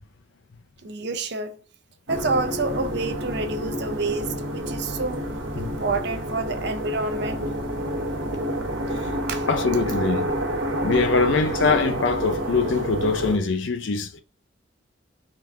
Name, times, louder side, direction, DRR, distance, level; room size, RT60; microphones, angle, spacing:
voice 1, 0.8-1.6 2.1-5.3 5.6-7.4 9.3-9.5, right 3 dB, 60° right, 0.6 m, -28 dB
sound 1, 2.1-13.4, equal, 90° right, 0.8 m, -29 dB
voice 2, 9.5-10.3 10.8-14.2, left 4 dB, 75° left, 0.5 m, -23 dB
3.8 x 2.4 x 4.3 m
head